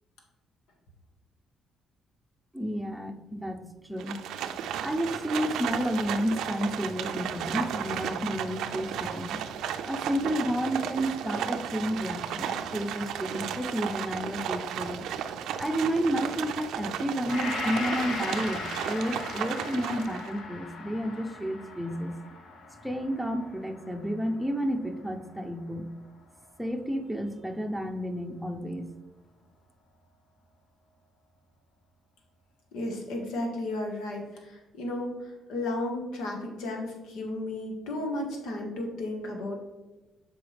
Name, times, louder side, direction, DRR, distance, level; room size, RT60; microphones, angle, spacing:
voice 1, 2.5-4.2 4.8-9.4 9.8-15.1 15.6-22.1 22.8-25.9 26.6-28.9, equal, ahead, 4 dB, 0.7 m, -31 dB
Livestock farm animals working animals, 4.0-20.4, right 8 dB, 85° right, 0.4 m, -34 dB
Gong, 17.3-25.6 26.0-26.1, left 4 dB, 70° left, 1.1 m, -39 dB
voice 2, 32.7-39.5, left 1 dB, 90° left, 1 dB, 1.6 m, -34 dB
7.6 x 4.9 x 3.4 m, 1.1 s
cardioid pair, 90°, 0 cm